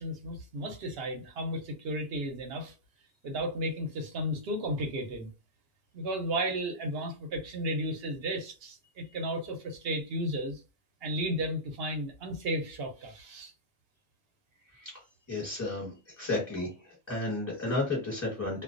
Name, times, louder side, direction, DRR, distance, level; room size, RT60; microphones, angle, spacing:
voice 1, 0.0-2.7 3.2-5.3 5.9-10.6 11.0-13.5, equal, 60° right, 0.8 m, -34 dB
voice 2, 15.3-15.9 16.2-18.6, left 2 dB, 15° left, 1.0 m, -32 dB
2.2 x 2.2 x 2.4 m
omnidirectional pair, 1.4 m